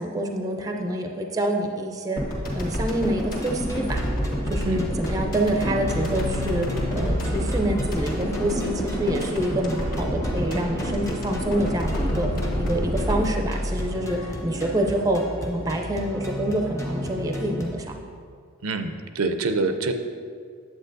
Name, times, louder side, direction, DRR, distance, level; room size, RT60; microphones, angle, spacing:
voice 1, 0.0-2.2 2.5-4.0 4.4-6.7 6.9-12.3 12.6-17.9, right 1 dB, 15° right, 2 dB, 0.5 m, -27 dB
sound 1, 2.2-14.6, equal, 40° left, 1.4 m, -29 dB
sound 2, 3.2-17.8, equal, 15° left, 0.8 m, -34 dB
sound 3, 5.4-15.4, left 2 dB, 75° left, 1.2 m, -35 dB
voice 2, 18.6-19.9, right 3 dB, 85° right, 7 dB, 0.5 m, -26 dB
9.0 x 8.1 x 2.6 m, 2.1 s
head